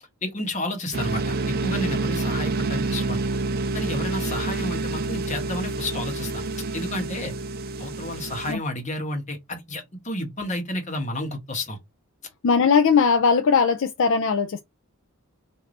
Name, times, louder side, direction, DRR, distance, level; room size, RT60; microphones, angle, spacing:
voice 1, 0.2-3.2 3.7-6.5 6.7-7.3 7.8-11.8, left 1 dB, 30° left, 1.1 m, -31 dB
sound 1, 0.9-8.5, right 3 dB, 40° right, 0.4 m, -28 dB
voice 2, 12.4-14.6, left 5 dB, 55° left, 0.4 m, -19 dB
3.2 x 2.7 x 3.8 m
head